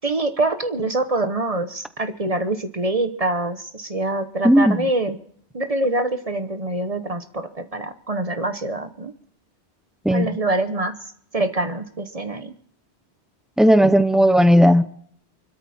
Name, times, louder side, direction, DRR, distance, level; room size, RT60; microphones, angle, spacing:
voice 1, 0.0-5.2 5.5-9.1 10.1-10.9 11.3-12.5, right 2 dB, 35° right, 1.1 m, -25 dB
voice 2, 4.4-4.8 10.0-10.3 13.6-14.8, equal, ahead, 0.6 m, -15 dB
24.0 x 13.0 x 4.3 m
omnidirectional pair, 1.1 m